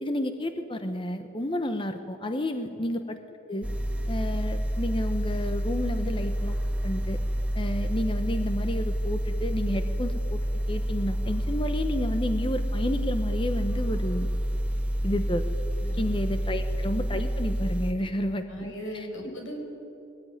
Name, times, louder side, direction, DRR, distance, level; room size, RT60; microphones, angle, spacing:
voice 1, 0.0-3.2 3.5-3.7 4.1-6.6 6.8-7.2 7.5-10.4 10.7-14.3 15.0-15.5 16.0-19.4, left 1 dB, 25° left, 8 dB, 1.0 m, -31 dB
sound 1, 3.6-17.9, equal, 5° right, 1.6 m, -28 dB
voice 2, 18.5-19.6, equal, 90° left, 3 dB, 5.5 m, -38 dB
22.5 x 18.5 x 9.9 m, 2.7 s
head